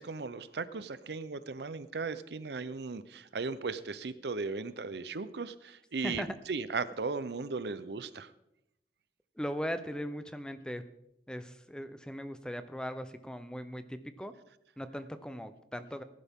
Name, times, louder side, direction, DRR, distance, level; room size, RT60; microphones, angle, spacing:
voice 1, 0.0-8.3, right 4 dB, 70° right, 15 dB, 0.6 m, -37 dB
voice 2, 9.4-10.8 11.3-14.3 14.8-16.0, equal, 5° left, 11 dB, 0.6 m, -39 dB
17.5 x 11.0 x 3.6 m, 0.85 s
head